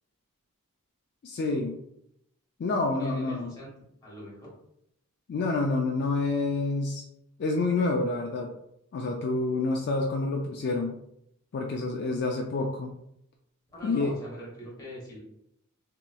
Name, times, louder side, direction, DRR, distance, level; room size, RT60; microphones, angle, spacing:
voice 1, 1.2-1.8 2.6-3.5 5.3-7.0 7.4-8.5 8.9-11.0 11.5-12.9 13.8-14.2, left 3 dB, 50° left, 1 dB, 0.3 m, -28 dB
voice 2, 2.9-3.7 4.0-4.5 13.7-15.2, equal, 20° left, -4 dB, 1.0 m, -43 dB
3.0 x 2.9 x 2.2 m, 0.78 s
head